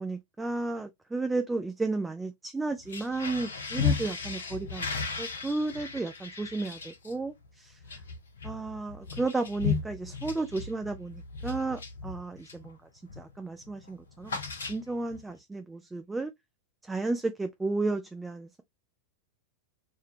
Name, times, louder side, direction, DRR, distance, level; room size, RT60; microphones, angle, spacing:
voice 1, 0.0-4.9 5.2-7.8 8.4-12.8 13.2-14.4 14.7-16.3 16.8-18.6, right 3 dB, 10° right, 0.4 m, -33 dB
sound 1, 2.8-12.7 13.1-13.4 13.6-15.2, left 6 dB, 70° left, 0.6 m, -35 dB
3.6 x 2.2 x 2.6 m
figure-of-eight pair, 90°, 0 cm